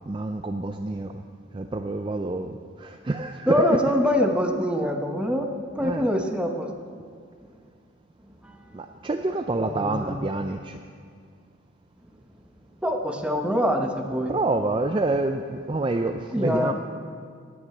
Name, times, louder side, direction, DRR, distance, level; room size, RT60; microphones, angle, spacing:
voice 1, 0.1-1.1 1.5-3.8 5.8-6.1 8.7-10.8 14.3-16.7, right 2 dB, 25° right, 6 dB, 0.4 m, -27 dB
voice 2, 3.5-5.5 5.8-6.7 8.4-8.6 9.6-10.3 12.8-14.3 16.3-16.7, equal, 5° right, 3 dB, 0.9 m, -24 dB
17.5 x 6.3 x 7.7 m, 2.1 s
head